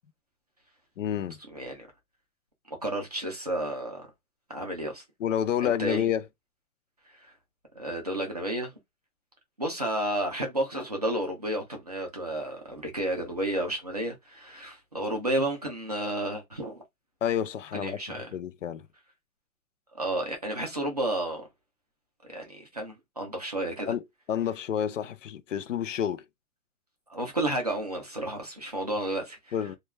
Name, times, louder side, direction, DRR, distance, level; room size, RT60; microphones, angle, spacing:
voice 1, 1.0-1.4 5.2-6.2 17.2-18.9 23.9-24.0 24.3-26.2 29.5-29.8, left 9 dB, 60° left, 0.5 m, -29 dB
voice 2, 1.5-1.9 2.7-4.1 4.5-5.0 5.6-6.0 7.1-7.3 7.7-8.7 9.6-16.8 17.7-18.3 20.0-21.4 22.3-23.9 27.1-29.5, right 1 dB, 30° right, 0.4 m, -31 dB
2.3 x 2.2 x 2.9 m
hypercardioid pair, 170°, 44 cm